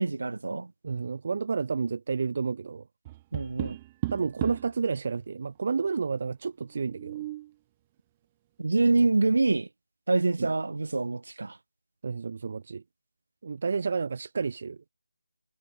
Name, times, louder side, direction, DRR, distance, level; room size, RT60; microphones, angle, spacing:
voice 1, 0.0-0.7 3.3-3.8 8.6-9.7 10.1-11.6, right 3 dB, 65° right, 1.0 m, -25 dB
voice 2, 0.8-2.9 4.1-7.2 10.4-10.5 12.0-12.8 13.4-14.8, right 5 dB, 45° right, 0.6 m, -30 dB
Tap, 3.1-4.8 6.8-7.5, right 16 dB, 15° right, 1.6 m, -35 dB
figure-of-eight pair, 165°, 0 cm